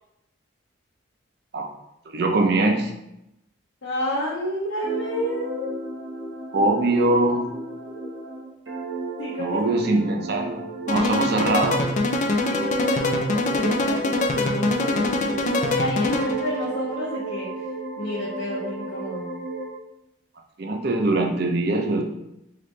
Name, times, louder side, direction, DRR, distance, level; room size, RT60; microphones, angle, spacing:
voice 1, 2.1-2.9 6.5-7.5 9.4-11.9 20.6-22.0, right 2 dB, 50° right, 2 dB, 0.6 m, -22 dB
voice 2, 3.8-5.8 8.2-8.4 9.2-9.6 11.0-11.1 12.4-17.5 18.0-19.3, equal, 70° left, -7 dB, 0.8 m, -30 dB
sound 1, 4.8-12.0 12.4-15.8 16.1-19.7, right 2 dB, 70° right, 1.3 m, -33 dB
sound 2, 10.9-16.5, left 2 dB, 40° left, 0.4 m, -24 dB
4.0 x 3.1 x 3.1 m, 0.84 s
head